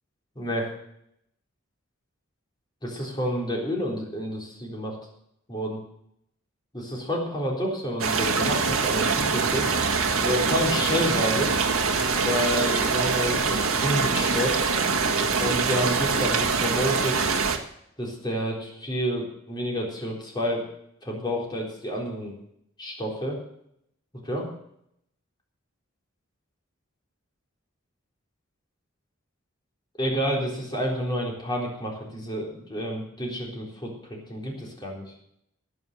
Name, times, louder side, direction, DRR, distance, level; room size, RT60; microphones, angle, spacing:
voice 1, 0.4-0.7 2.8-5.0 5.5-5.8 6.7-9.7 10.2-11.6 12.2-14.6 15.4-17.3 18.0-20.6 21.0-22.3 22.8-23.4 24.2-24.5 30.0-35.1, equal, 20° left, -2 dB, 3.9 m, -29 dB
sound 1, 8.0-17.6, right 4 dB, 90° right, 1.8 m, -24 dB
18.0 x 6.9 x 7.7 m, 0.74 s
head